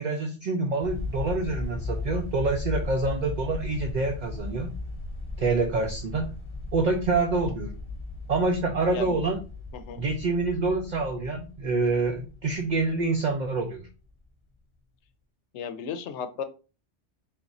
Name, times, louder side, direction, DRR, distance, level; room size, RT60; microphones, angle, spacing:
voice 1, 0.0-4.7 5.4-6.3 6.7-7.7 8.3-9.4 10.0-13.9, right 3 dB, 55° right, 3 dB, 0.5 m, -26 dB
sound 1, 0.8-14.1, left 3 dB, 25° left, 1.0 m, -37 dB
voice 2, 9.7-10.1 15.5-16.4, left 7 dB, 80° left, 10 dB, 0.9 m, -35 dB
3.7 x 2.5 x 4.0 m, 0.35 s
omnidirectional pair, 1.2 m